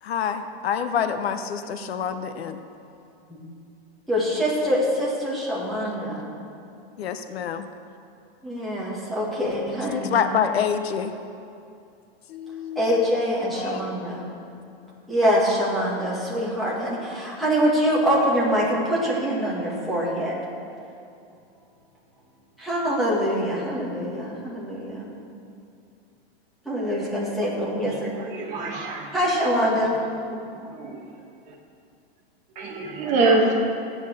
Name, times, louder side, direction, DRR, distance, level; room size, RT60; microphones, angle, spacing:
voice 1, 0.0-2.6 7.0-7.7 9.9-11.1 12.3-13.1 13.4-13.8, left 7 dB, 75° left, 9 dB, 1.0 m, -27 dB
voice 2, 4.1-6.3 8.4-10.2 12.8-14.2 15.1-20.3 22.6-25.1 26.7-28.1 29.1-30.0, equal, ahead, -7 dB, 2.0 m, -24 dB
voice 3, 27.8-29.1 30.4-31.0 32.5-33.5, right 3 dB, 25° right, 0 dB, 1.5 m, -25 dB
15.0 x 9.1 x 6.4 m, 2.6 s
supercardioid pair, 175°, 31 cm